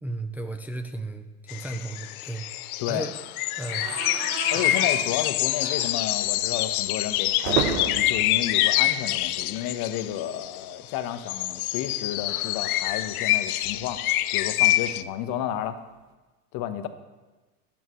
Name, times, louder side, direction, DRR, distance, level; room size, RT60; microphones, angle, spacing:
voice 1, 0.0-2.4 2.9-3.1 3.5-3.9 4.5-4.6, right 2 dB, 5° right, 5 dB, 0.5 m, -34 dB
sound 1, 1.5-10.6 11.2-15.0, left 15 dB, 75° left, 0.6 m, -26 dB
sound 2, 3.6-9.6 9.9-10.1 10.4-10.5 11.8-14.1, right 10 dB, 60° right, 1.1 m, -35 dB
voice 2, 4.5-14.0 14.3-15.8 16.5-16.9, left 11 dB, 50° left, 9 dB, 1.2 m, -31 dB
21.5 x 9.2 x 3.2 m, 1.2 s
hypercardioid pair, 105°, 44 cm